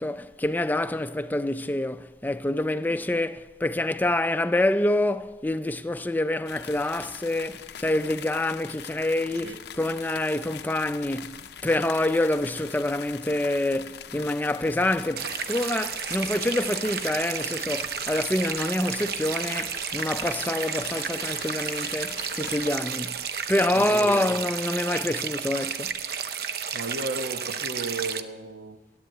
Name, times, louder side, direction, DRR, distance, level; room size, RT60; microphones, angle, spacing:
voice 1, 0.0-11.4 11.6-26.0, left 1 dB, 10° left, 0.4 m, -27 dB
sound 1, 6.5-22.8, left 8 dB, 70° left, 0.5 m, -42 dB
sound 2, 15.2-28.2, right 7 dB, 60° right, 0.7 m, -32 dB
voice 2, 23.7-24.3 26.7-28.8, right 3 dB, 90° right, 1.1 m, -34 dB
14.0 x 8.8 x 9.0 m
head